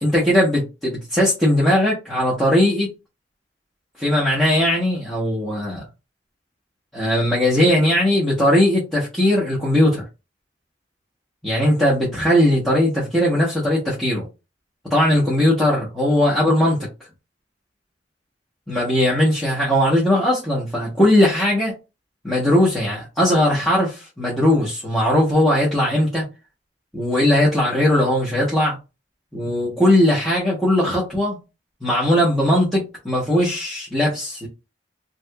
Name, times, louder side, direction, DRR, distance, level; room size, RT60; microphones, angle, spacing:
voice 1, 0.0-2.9 4.0-5.8 6.9-10.0 11.4-14.3 14.9-16.8 18.7-21.7 22.2-26.2 26.9-28.8 29.3-31.4 31.8-34.5, left 1 dB, 5° left, 0.9 m, -19 dB
2.8 x 2.4 x 3.3 m
head